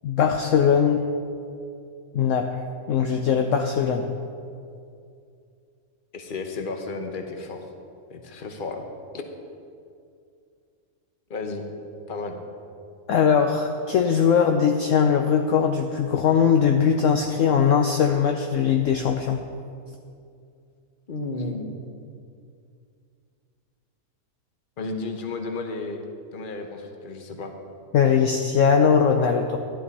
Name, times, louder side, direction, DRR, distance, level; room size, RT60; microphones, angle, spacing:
voice 1, 0.0-1.0 2.1-2.6 2.9-4.1 13.1-19.4 27.9-29.6, left 7 dB, 65° left, 3 dB, 0.9 m, -20 dB
voice 2, 6.1-7.7 8.1-8.9 9.1-9.2 11.3-11.6 12.1-12.4 21.1-21.7 24.8-26.0 26.3-27.5, left 3 dB, 40° left, 4 dB, 1.1 m, -33 dB
12.5 x 11.5 x 4.2 m, 2.4 s
omnidirectional pair, 1.6 m